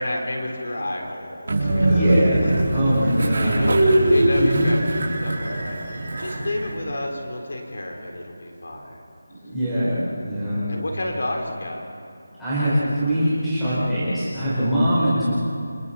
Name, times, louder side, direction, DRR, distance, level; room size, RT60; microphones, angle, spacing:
voice 1, 0.0-9.1 10.6-11.8 15.2-15.3, left 1 dB, 65° left, 1 dB, 3.8 m, -31 dB
Train, 1.5-6.8, right 1 dB, 40° right, 4.6 m, -21 dB
voice 2, 1.8-2.4 2.7-3.6 4.4-4.7 9.3-10.7 12.4-15.4, equal, 5° left, -15 dB, 5.3 m, -23 dB
29.5 x 27.0 x 4.3 m, 2.5 s
figure-of-eight pair, 180°, 0 cm